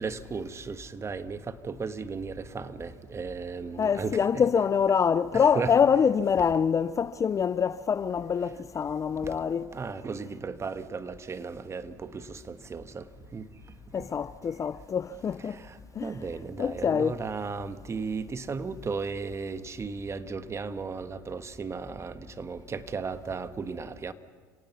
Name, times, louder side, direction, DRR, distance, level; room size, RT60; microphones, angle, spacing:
voice 1, 0.0-4.4 5.3-5.7 9.2-9.4 9.7-13.1 13.3-13.5 14.0-14.1 15.5-24.1, right 4 dB, 25° right, 1.4 m, -35 dB
voice 2, 3.8-9.7 13.9-15.6 16.0-16.1 16.6-17.2, left 7 dB, 30° left, 0.6 m, -25 dB
29.5 x 18.0 x 5.8 m
hypercardioid pair, 80°, 10 cm